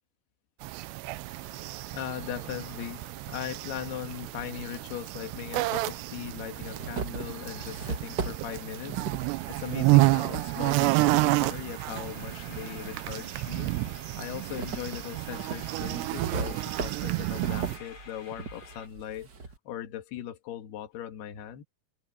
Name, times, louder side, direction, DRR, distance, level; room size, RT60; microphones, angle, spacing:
sound 1, 0.6-17.8, right 21 dB, 85° right, 2.8 m, -30 dB
sound 2, 1.3-18.9, left 5 dB, 35° left, 3.5 m, -52 dB
voice 1, 1.9-9.1 9.5-13.7 14.2-19.3 19.7-21.6, left 10 dB, 70° left, 3.8 m, -39 dB
sound 3, 4.4-4.5 5.6-5.7 6.1-11.3 11.8-13.0 13.4-19.6, right 5 dB, 65° right, 1.0 m, -38 dB
open air
omnidirectional pair, 4.8 m